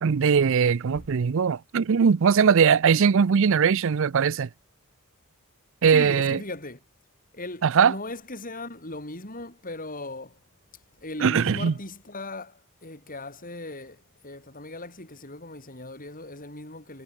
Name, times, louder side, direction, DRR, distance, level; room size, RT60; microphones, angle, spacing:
voice 1, 0.0-4.5 5.8-6.4 7.6-7.9 11.2-11.7, right 6 dB, 60° right, 0.5 m, -20 dB
voice 2, 5.9-6.8 7.3-10.4 11.0-17.0, left 2 dB, 40° left, 7.1 m, -38 dB
head